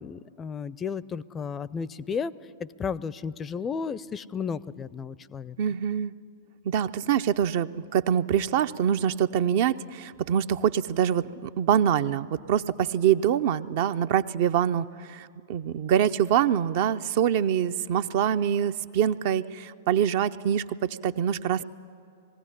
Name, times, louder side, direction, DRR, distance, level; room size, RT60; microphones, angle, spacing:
voice 1, 0.0-2.3 2.6-5.6, left 6 dB, 20° left, 19 dB, 0.5 m, -33 dB
voice 2, 5.6-6.1 6.6-21.6, right 9 dB, 50° right, 12 dB, 0.5 m, -25 dB
20.5 x 16.0 x 9.9 m, 2.6 s
figure-of-eight pair, 100°, 0 cm